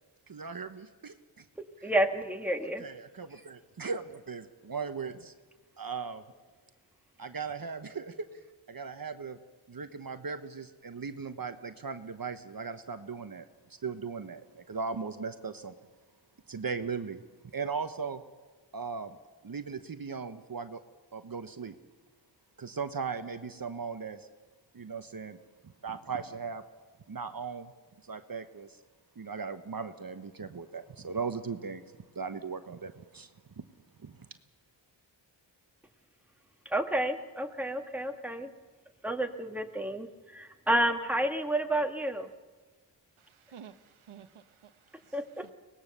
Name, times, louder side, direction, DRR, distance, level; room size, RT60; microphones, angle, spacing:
voice 1, 0.3-1.4 1.8-1.9 2.6-5.3 5.8-6.2 7.2-8.4 8.7-9.4 9.7-13.5 13.8-15.7 16.5-17.2 17.5-18.2 18.7-19.2 19.4-20.8 21.1-21.7 22.6-24.3 24.7-25.4 25.6-26.6 27.1-27.7 28.0-28.8 29.2-31.8 32.1-33.3 33.6-33.7 34.0-34.3, right 5 dB, 45° right, 1.1 m, -38 dB
voice 2, 1.8-2.8 36.7-38.5 39.0-42.3 45.1-45.5, right 1 dB, 5° right, 1.8 m, -30 dB
voice 3, 43.2-45.5, right 8 dB, 80° right, 1.1 m, -53 dB
24.0 x 19.0 x 6.8 m
cardioid pair, 55°, 48 cm